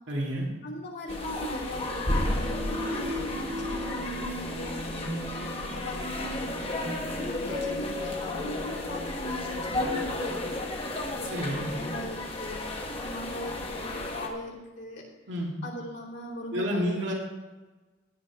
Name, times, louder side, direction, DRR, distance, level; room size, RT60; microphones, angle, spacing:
voice 1, 0.1-0.5 11.3-11.7 15.3-15.5 16.5-17.1, equal, 70° right, -1 dB, 2.2 m, -29 dB
voice 2, 0.6-5.5 5.7-15.1 15.6-17.1, equal, 60° left, -4 dB, 3.0 m, -39 dB
sound 1, 1.1-14.3, left 1 dB, 30° left, 1.3 m, -33 dB
sound 2, 2.1-10.4, left 1 dB, 50° right, 2.5 m, -38 dB
16.0 x 9.5 x 3.6 m, 1.2 s
head